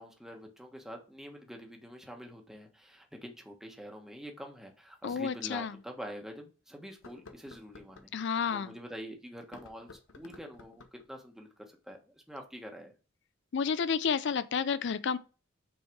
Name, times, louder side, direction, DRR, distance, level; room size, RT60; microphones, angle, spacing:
voice 1, 0.0-9.9 10.1-12.9, equal, ahead, 1.3 m, -46 dB
sound 1, 4.9-5.0 5.6-5.7 6.9-8.1 9.4-11.1, left 3 dB, 85° left, 0.9 m, -54 dB
voice 2, 5.0-5.7 8.1-8.7 13.5-15.2, left 6 dB, 65° left, 0.4 m, -30 dB
6.2 x 4.5 x 4.6 m
head